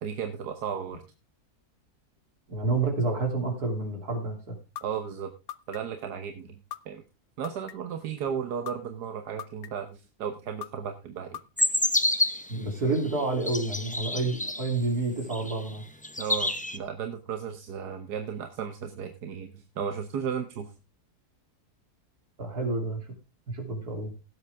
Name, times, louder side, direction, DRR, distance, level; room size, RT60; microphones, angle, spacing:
voice 1, 0.0-1.0 4.8-5.3 5.7-7.0 7.4-11.4 16.2-20.7, right 7 dB, 90° right, 8 dB, 1.6 m, -35 dB
voice 2, 2.5-4.6 12.5-15.8 22.4-23.1 23.5-24.1, right 3 dB, 70° right, 3 dB, 3.6 m, -29 dB
sound 1, 4.8-4.9 5.5-6.0 6.7-6.8 7.4-8.0 8.7-8.8 9.4-9.9 10.6-10.7 11.3-11.9, left 11 dB, 70° left, 1.2 m, -38 dB
sound 2, 11.6-12.5 13.2-14.7 15.3-15.8 16.0-16.8, left 1 dB, 10° left, 0.5 m, -28 dB
17.0 x 8.0 x 3.5 m, 0.29 s
omnidirectional pair, 1.7 m